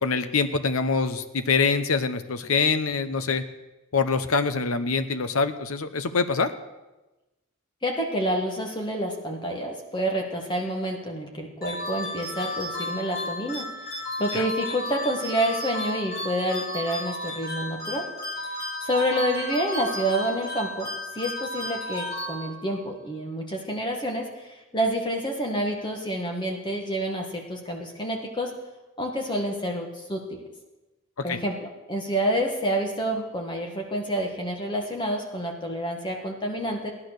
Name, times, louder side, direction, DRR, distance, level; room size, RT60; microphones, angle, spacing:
voice 1, 0.0-3.4 3.9-6.5 14.3-14.4 31.2-31.4, left 4 dB, 75° left, 10 dB, 0.8 m, -24 dB
voice 2, 7.8-13.7 14.2-18.1 18.8-28.5 29.0-30.4 31.2-36.9, equal, 20° left, 1 dB, 1.6 m, -28 dB
sound 1, 11.6-22.8, left 1 dB, 45° left, 5.6 m, -33 dB
16.5 x 11.0 x 6.6 m, 1.1 s
head